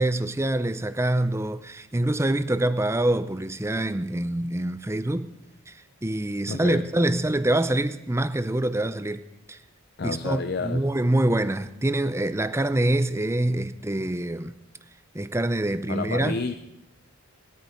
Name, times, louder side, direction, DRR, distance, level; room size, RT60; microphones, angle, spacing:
voice 1, 0.0-5.3 5.7-9.2 9.5-9.6 10.0-14.5 15.1-16.4, right 1 dB, 10° right, 0.5 m, -25 dB
voice 2, 6.4-6.9 10.0-10.9 14.0-14.1 15.9-16.6, left 4 dB, 45° left, 0.6 m, -30 dB
20.0 x 13.0 x 5.2 m
head